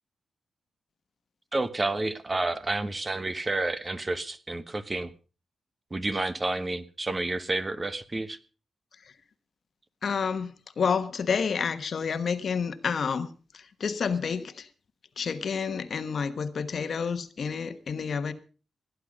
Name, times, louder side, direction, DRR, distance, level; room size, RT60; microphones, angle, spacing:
voice 1, 1.5-5.1 5.9-8.4, right 2 dB, 25° right, 1.1 m, -30 dB
voice 2, 10.0-13.3 13.5-14.7 15.2-18.3, left 6 dB, 60° left, 1.3 m, -29 dB
17.5 x 10.5 x 5.2 m
cardioid pair, 100°, 0 cm